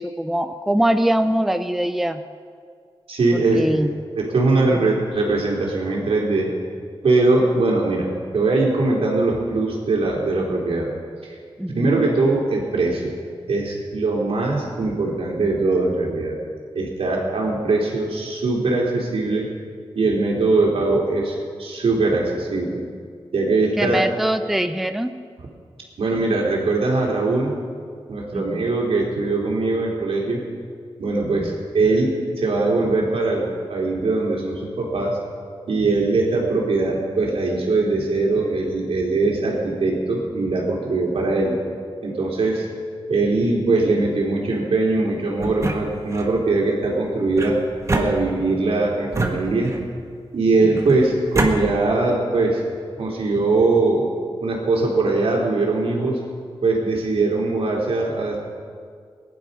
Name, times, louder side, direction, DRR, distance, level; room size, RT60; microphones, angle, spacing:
voice 1, 0.0-2.2 3.3-3.9 11.6-12.0 23.8-25.1 28.3-28.7 31.2-31.6, right 1 dB, ahead, 9 dB, 0.5 m, -23 dB
voice 2, 3.1-3.6 4.2-6.5 7.0-10.9 11.7-13.1 13.5-16.3 16.7-19.5 19.9-22.8 23.3-24.0 26.0-27.5 28.1-30.4 31.0-35.2 35.7-41.6 42.0-42.7 43.1-47.6 47.9-49.7 50.3-52.6 53.0-54.1 54.4-56.2 56.6-58.4, right 3 dB, 85° right, -2 dB, 3.4 m, -21 dB
sound 1, 45.4-46.4 47.4-48.6 49.1-50.0 50.8-51.5, right 2 dB, 30° right, 1.6 m, -26 dB
20.5 x 11.0 x 5.4 m, 2.1 s
wide cardioid pair, 140°, 10 cm